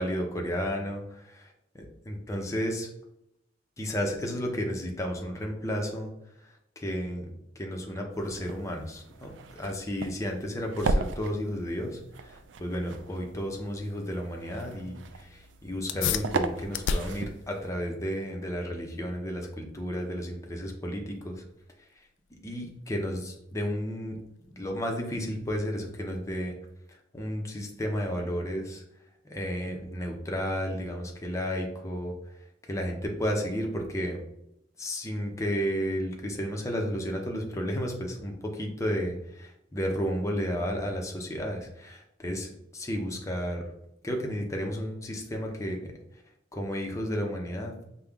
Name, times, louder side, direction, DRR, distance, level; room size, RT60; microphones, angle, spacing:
voice 1, 0.0-1.3 2.1-2.9 3.8-6.1 6.8-7.3 7.6-21.4 22.4-24.2 24.6-26.5 27.1-28.8 29.2-32.1 32.6-34.2 34.8-43.6 44.0-45.9 46.5-47.7, equal, 15° left, 1 dB, 0.7 m, -32 dB
sound 1, 8.1-17.7, right 3 dB, 70° right, 0.4 m, -36 dB
sound 2, 15.9-25.8, left 6 dB, 75° left, 0.3 m, -38 dB
5.4 x 2.3 x 3.5 m, 0.82 s
head